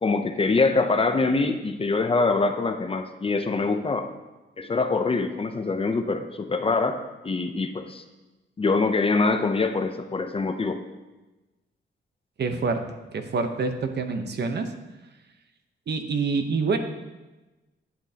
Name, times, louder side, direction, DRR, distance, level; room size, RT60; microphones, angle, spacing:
voice 1, 0.0-4.1 4.6-7.0 7.2-8.0 8.6-10.8, left 3 dB, 30° left, 7 dB, 0.6 m, -24 dB
voice 2, 12.4-12.8 13.1-14.7 15.9-16.8, right 4 dB, 55° right, 6 dB, 0.9 m, -26 dB
11.0 x 8.8 x 2.9 m, 1.1 s
wide cardioid pair, 125°, 20 cm